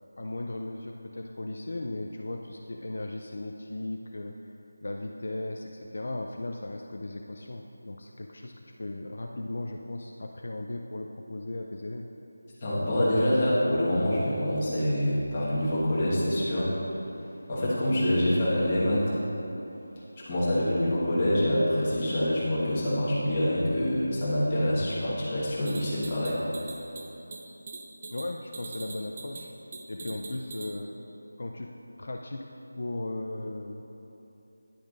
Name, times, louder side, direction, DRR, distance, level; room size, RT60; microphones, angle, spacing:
voice 1, 0.2-4.5 4.8-12.1 28.1-29.5 29.9-30.9 31.4-32.5 32.8-33.9, left 2 dB, 55° left, 2 dB, 0.4 m, -37 dB
voice 2, 12.6-16.7 17.5-19.2 20.2-26.4, left 1 dB, 20° left, -9 dB, 1.4 m, -26 dB
sound 1, 25.7-30.8, right 3 dB, 25° right, 0.4 m, -43 dB
10.0 x 8.9 x 2.5 m, 3.0 s
figure-of-eight pair, 180°, 0 cm